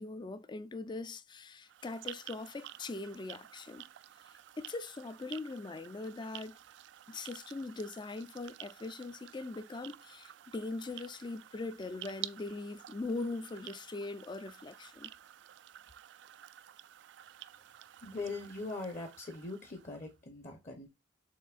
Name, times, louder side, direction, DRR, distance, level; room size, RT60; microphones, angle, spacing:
voice 1, 0.0-3.9 4.6-6.6 7.1-15.1, left 3 dB, 25° left, 0.4 m, -41 dB
sound 1, 1.6-20.1, right 13 dB, 70° right, 0.3 m, -51 dB
voice 2, 18.0-20.9, left 3 dB, 40° left, 1.0 m, -41 dB
7.1 x 2.7 x 2.5 m
head